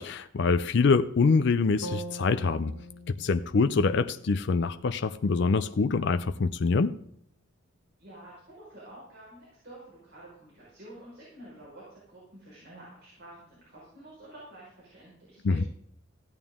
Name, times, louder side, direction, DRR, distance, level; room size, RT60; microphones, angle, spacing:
voice 1, 0.0-2.7 3.1-7.0 15.4-15.6, left 4 dB, 55° left, 11 dB, 0.4 m, -25 dB
sound 1, 1.8-5.9, right 1 dB, 85° left, 1.4 m, -44 dB
voice 2, 8.0-15.7, right 1 dB, 50° right, -7 dB, 4.8 m, -49 dB
15.5 x 9.0 x 3.6 m, 0.67 s
head